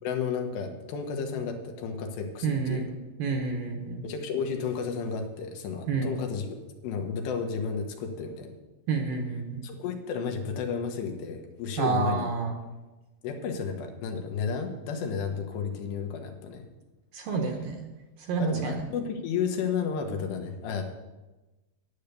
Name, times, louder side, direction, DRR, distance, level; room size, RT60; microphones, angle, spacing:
voice 1, 0.0-2.8 4.0-6.5 6.8-8.5 9.6-12.3 13.2-16.6 18.4-20.9, left 6 dB, 85° left, 4 dB, 3.4 m, -32 dB
voice 2, 2.4-2.9 3.2-4.0 5.9-6.1 8.9-9.6 11.8-12.5 17.1-17.8 18.3-18.8, right 4 dB, 70° right, 3 dB, 2.4 m, -29 dB
11.0 x 8.8 x 6.8 m, 1.1 s
omnidirectional pair, 4.8 m